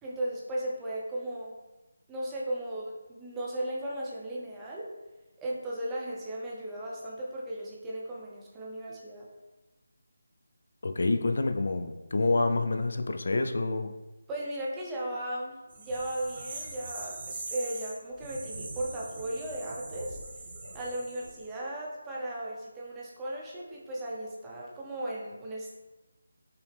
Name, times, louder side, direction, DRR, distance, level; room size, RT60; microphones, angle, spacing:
voice 1, 0.0-1.5 2.1-4.9 5.4-9.2 14.3-20.2 20.7-25.7, right 1 dB, 10° right, -5 dB, 0.6 m, -36 dB
voice 2, 10.8-13.9, left 3 dB, 60° left, 7 dB, 0.3 m, -27 dB
sound 1, 15.7-21.5, right 2 dB, 40° right, 0.8 m, -42 dB
5.5 x 2.1 x 3.3 m, 1.1 s
figure-of-eight pair, 170°, 0 cm